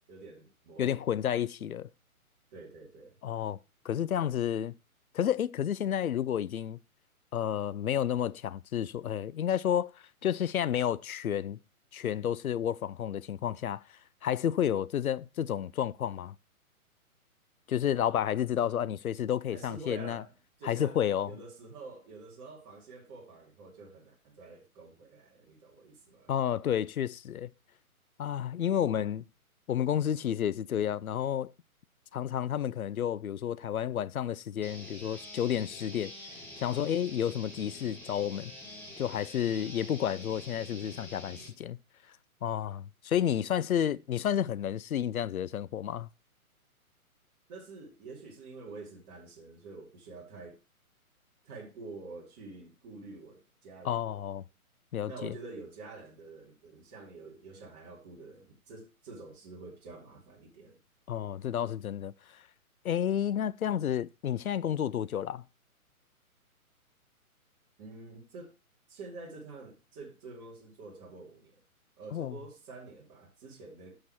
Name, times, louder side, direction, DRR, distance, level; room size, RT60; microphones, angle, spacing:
voice 1, 0.1-1.7 2.5-3.2 19.5-26.3 39.5-39.8 47.5-50.6 51.4-54.2 55.0-60.8 67.8-68.5 68.9-71.5 72.0-74.0, right 3 dB, 30° right, 2.5 m, -48 dB
voice 2, 0.8-1.9 3.2-3.6 3.8-4.8 5.1-6.8 7.3-9.9 10.2-11.6 11.9-13.8 14.2-16.4 17.7-20.2 20.6-21.3 26.3-27.5 28.2-29.2 29.7-31.5 32.1-36.1 36.6-38.5 39.0-41.8 42.4-46.1 53.8-54.4 54.9-55.4 61.1-62.1 62.8-65.4 72.1-72.4, left 10 dB, 70° left, 0.7 m, -31 dB
sound 1, 34.6-41.5, left 1 dB, 5° left, 2.1 m, -47 dB
8.8 x 6.2 x 4.5 m
figure-of-eight pair, 135°, 44 cm